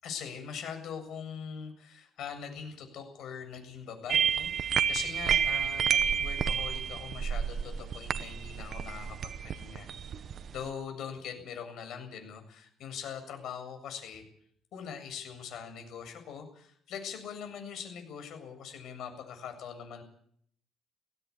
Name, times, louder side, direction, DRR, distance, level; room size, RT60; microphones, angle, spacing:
voice 1, 0.0-9.9 10.5-14.2 14.7-20.0, left 7 dB, 60° left, 6 dB, 7.5 m, -42 dB
sound 1, 4.1-10.7, right 7 dB, 40° right, 0.9 m, -30 dB
21.0 x 16.5 x 8.6 m, 0.65 s
cardioid pair, 150°, 0 cm